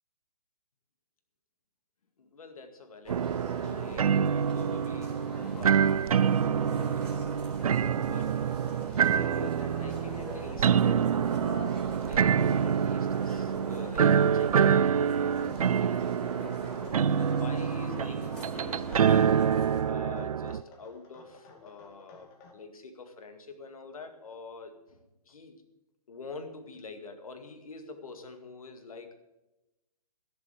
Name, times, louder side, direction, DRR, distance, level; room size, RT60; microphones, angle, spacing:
voice 1, 2.2-7.4 8.0-8.4 9.0-11.3 11.9-16.7 17.1-19.5 19.8-25.6 26.1-29.1, left 4 dB, 60° left, 7 dB, 2.1 m, -46 dB
sound 1, 3.0-19.8, right 1 dB, 5° left, 4.2 m, -43 dB
sound 2, 3.1-20.6, right 7 dB, 65° right, 0.5 m, -26 dB
sound 3, 8.2-22.5, left 3 dB, 30° left, 2.2 m, -55 dB
15.5 x 7.2 x 7.8 m, 0.98 s
figure-of-eight pair, 125°, 20 cm